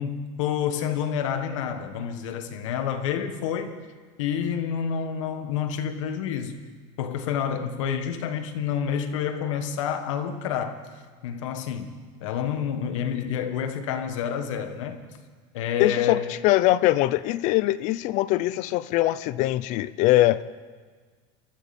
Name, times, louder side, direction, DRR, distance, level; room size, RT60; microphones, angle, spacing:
voice 1, 0.0-3.7 4.2-6.6 7.0-10.8 11.2-15.0 15.5-16.3, left 8 dB, 90° left, 1.5 m, -28 dB
voice 2, 15.8-20.4, left 16 dB, 50° left, 0.5 m, -22 dB
24.0 x 13.5 x 4.3 m
supercardioid pair, 140°, 16 cm